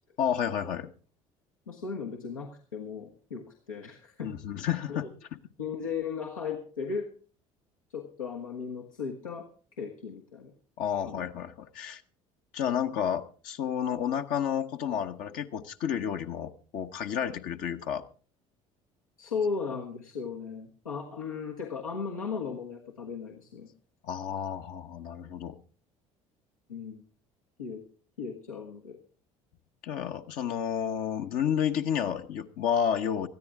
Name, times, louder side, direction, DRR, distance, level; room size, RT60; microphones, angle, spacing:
voice 1, 0.2-0.9 4.2-5.4 10.8-12.0 12.5-18.0 24.0-25.5 29.8-33.3, left 8 dB, 55° left, 6 dB, 1.0 m, -31 dB
voice 2, 1.7-4.3 5.6-7.1 7.9-9.5 9.8-10.5 11.0-11.2 19.2-23.7 26.7-27.0 27.6-27.8 28.2-29.0, left 5 dB, 80° left, 0 dB, 1.4 m, -36 dB
19.0 x 13.5 x 3.6 m, 0.41 s
figure-of-eight pair, 55°, 17 cm